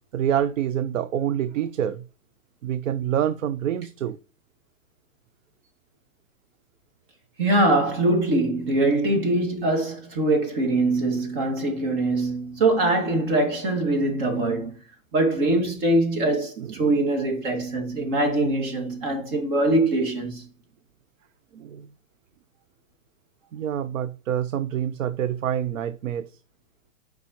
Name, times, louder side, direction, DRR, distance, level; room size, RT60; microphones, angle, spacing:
voice 1, 0.1-2.0 2.6-4.2 16.6-16.9 21.5-21.9 23.5-26.4, right 10 dB, 75° right, 0.6 m, -27 dB
voice 2, 7.4-14.8 15.1-20.4, right 2 dB, 45° right, 2.3 m, -23 dB
9.3 x 4.8 x 3.0 m
hypercardioid pair, 140°, 39 cm